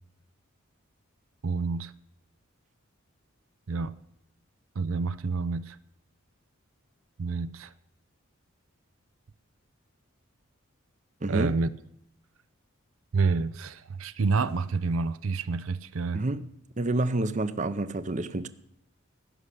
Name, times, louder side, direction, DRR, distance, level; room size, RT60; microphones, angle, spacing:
voice 1, 1.4-1.9 3.7-3.9 4.8-5.8 7.2-7.7 11.3-11.7 13.1-16.2, right 4 dB, 75° right, 0.6 m, -28 dB
voice 2, 11.2-11.6 16.1-16.4 16.8-18.5, right 2 dB, 35° right, 0.7 m, -28 dB
16.0 x 6.5 x 9.9 m
head